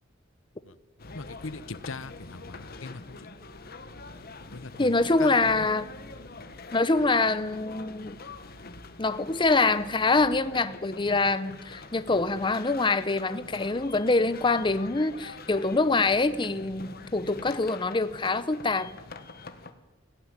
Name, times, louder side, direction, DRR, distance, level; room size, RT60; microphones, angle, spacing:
sound 1, 1.0-19.7, left 3 dB, 50° left, 1.6 m, -45 dB
voice 1, 1.1-3.3 4.5-5.7, left 3 dB, 80° left, 16 dB, 0.9 m, -41 dB
voice 2, 4.8-5.9 6.7-8.2 9.0-18.9, left 3 dB, 25° left, 12 dB, 0.8 m, -25 dB
18.0 x 16.0 x 9.7 m, 1.1 s
head